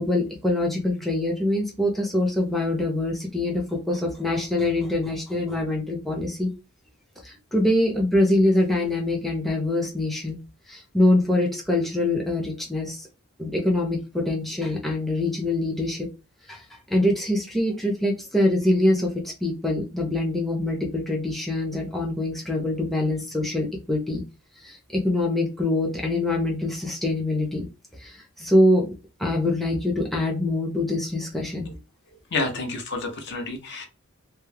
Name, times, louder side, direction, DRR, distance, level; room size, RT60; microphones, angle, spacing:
voice 1, 0.0-6.5 7.2-10.4 10.7-13.1 13.4-16.1 16.5-16.6 16.9-19.1 19.4-24.2 24.6-27.6 28.0-28.9 29.2-31.7, left 1 dB, ahead, 1 dB, 0.5 m, -24 dB
voice 2, 32.3-33.9, left 3 dB, 55° left, 5 dB, 0.6 m, -29 dB
2.2 x 2.0 x 3.1 m, 0.28 s
head